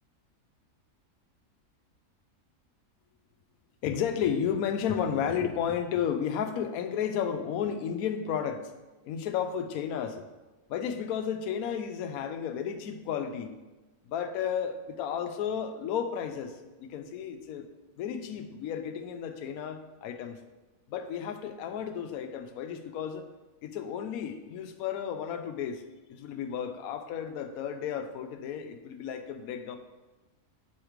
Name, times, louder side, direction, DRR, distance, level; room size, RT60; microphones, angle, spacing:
voice 1, 3.8-8.7 9.0-10.2 10.7-13.6 14.1-17.7 18.0-20.4 20.9-23.3 23.6-25.8 26.1-29.8, left 8 dB, 75° left, 7 dB, 1.0 m, -33 dB
7.9 x 3.1 x 5.0 m, 1.1 s
omnidirectional pair, 1.6 m